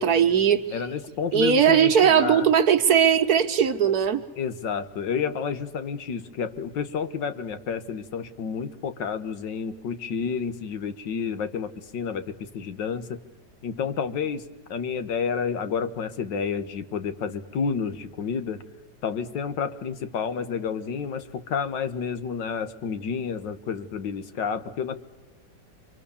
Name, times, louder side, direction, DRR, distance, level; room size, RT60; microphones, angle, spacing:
voice 1, 0.0-0.6 1.3-4.2, right 8 dB, 60° right, 8 dB, 1.5 m, -19 dB
voice 2, 0.7-2.5 4.4-13.2 13.6-14.4 14.7-18.6 19.0-25.0, left 6 dB, 85° left, 11 dB, 1.9 m, -30 dB
28.5 x 24.5 x 7.0 m, 1.0 s
omnidirectional pair, 1.9 m